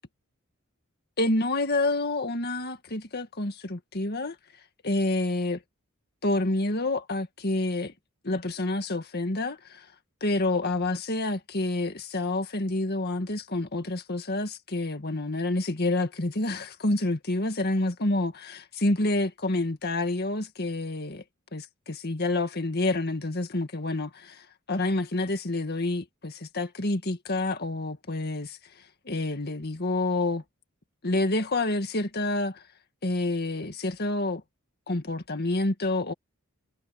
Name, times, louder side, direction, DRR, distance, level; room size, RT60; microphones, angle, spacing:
voice 1, 1.2-4.4 4.8-5.6 6.2-7.9 8.2-9.9 10.2-21.2 21.5-28.6 29.1-30.4 31.0-32.6 33.0-34.4 34.9-36.1, left 2 dB, 45° left, 2.0 m, -28 dB
head